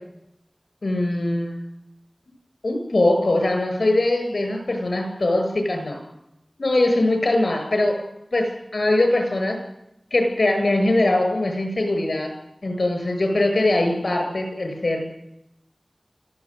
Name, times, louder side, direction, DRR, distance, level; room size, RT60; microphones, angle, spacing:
voice 1, 0.8-1.5 2.6-6.0 6.6-8.0 8.3-9.6 10.1-12.3 12.6-15.0, left 2 dB, 75° left, 4 dB, 7.9 m, -21 dB
25.0 x 15.5 x 9.4 m, 0.86 s
wide cardioid pair, 45°, 0 cm